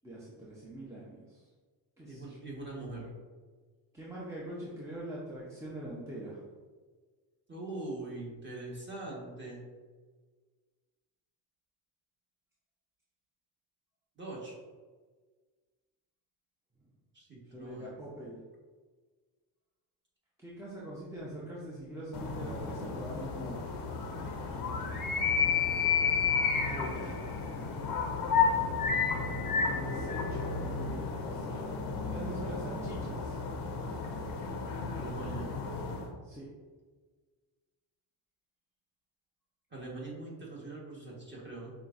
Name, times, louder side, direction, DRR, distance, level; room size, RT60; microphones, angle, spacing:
voice 1, 0.0-1.4 2.0-2.4 3.9-6.4 17.5-18.4 20.4-23.8 26.5-27.2 29.6-30.7 31.2-31.7 32.1-33.4 36.2-36.5, right 1 dB, 5° right, -7 dB, 0.7 m, -43 dB
voice 2, 2.0-3.1 7.5-9.6 14.2-14.5 17.1-18.0 34.9-35.5 39.7-41.7, right 2 dB, 25° right, -4 dB, 1.5 m, -42 dB
sound 1, 22.1-36.1, left 5 dB, 45° left, 0.7 m, -32 dB
5.6 x 2.4 x 2.6 m, 1.4 s
supercardioid pair, 80°, 49 cm